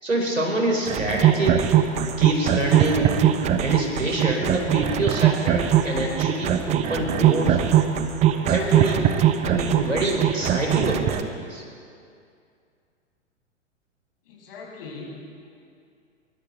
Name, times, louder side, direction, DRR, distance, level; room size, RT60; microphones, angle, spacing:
voice 1, 0.0-1.6 2.2-3.3 3.6-7.6 8.3-9.0 9.5-11.6, right 1 dB, 85° right, 0 dB, 4.9 m, -26 dB
sound 1, 0.9-11.2, right 11 dB, 20° right, 0.8 m, -21 dB
voice 2, 14.3-15.5, left 3 dB, 50° left, -1 dB, 6.5 m, -40 dB
24.5 x 23.0 x 4.6 m, 2.4 s
figure-of-eight pair, 105°, 38 cm